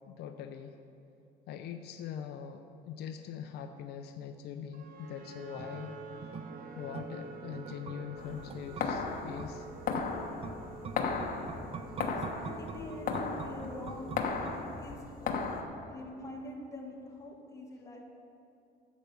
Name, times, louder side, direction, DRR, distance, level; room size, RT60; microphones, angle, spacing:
voice 1, 0.1-0.8 1.5-6.0 6.8-9.7, left 8 dB, 75° left, 6 dB, 0.6 m, -42 dB
sound 1, 4.7-14.9, right 3 dB, 55° right, 1.1 m, -48 dB
sound 2, 5.6-15.1 15.4-15.5, right 5 dB, 35° right, 0.5 m, -46 dB
sound 3, 8.2-15.6, left 5 dB, 60° left, 1.1 m, -36 dB
voice 2, 11.9-14.1 14.4-15.4 15.9-18.0, left 1 dB, 20° left, -2 dB, 2.0 m, -45 dB
10.5 x 7.3 x 6.8 m, 2.6 s
cardioid pair, 110°, 17 cm